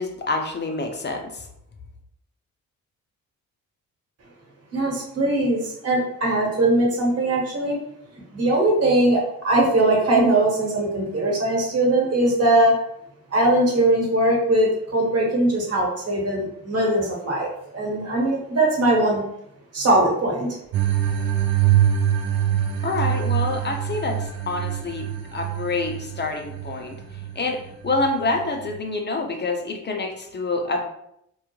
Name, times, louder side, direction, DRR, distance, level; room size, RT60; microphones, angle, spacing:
voice 1, 0.0-1.4 22.8-27.0 27.4-30.8, left 3 dB, 30° left, 3 dB, 0.5 m, -27 dB
voice 2, 4.7-7.8 8.3-12.8 13.3-19.2 19.7-20.6, right 1 dB, 45° right, -2 dB, 1.1 m, -20 dB
sound 1, 20.7-28.8, right 10 dB, 70° right, 0.5 m, -24 dB
2.3 x 2.1 x 3.0 m, 0.76 s
supercardioid pair, 60°, 36 cm